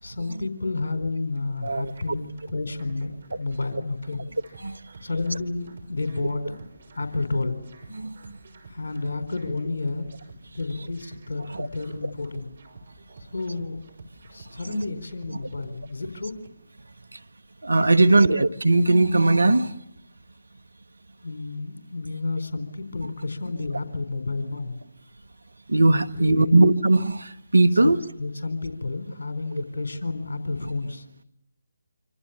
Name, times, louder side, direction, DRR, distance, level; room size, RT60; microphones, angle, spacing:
voice 1, 0.0-4.3 5.0-6.6 6.9-7.6 8.7-10.1 10.5-12.5 13.3-13.8 14.3-16.4 18.0-18.1 21.2-24.8 26.1-26.6 27.8-31.0, left 3 dB, 50° left, 4.1 m, -31 dB
sound 1, 1.3-16.5, right 3 dB, 50° right, 6.1 m, -49 dB
voice 2, 7.9-8.4 11.5-11.7 14.6-14.8 17.1-17.2 17.6-19.7 25.7-28.0, right 2 dB, 70° right, 1.4 m, -19 dB
26.0 x 26.0 x 7.2 m
figure-of-eight pair, 145°, 0 cm